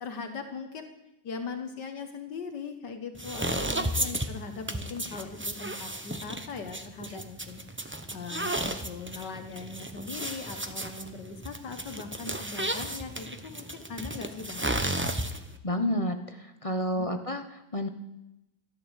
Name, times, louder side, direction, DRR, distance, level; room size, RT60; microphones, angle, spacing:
voice 1, 0.0-0.9 1.2-14.7 17.0-17.1, left 5 dB, 65° left, 7 dB, 1.8 m, -40 dB
sound 1, 3.2-15.6, right 1 dB, 20° right, 0.3 m, -34 dB
voice 2, 15.6-17.9, left 1 dB, 25° left, 7 dB, 0.8 m, -30 dB
14.0 x 12.5 x 8.2 m, 0.91 s
omnidirectional pair, 2.0 m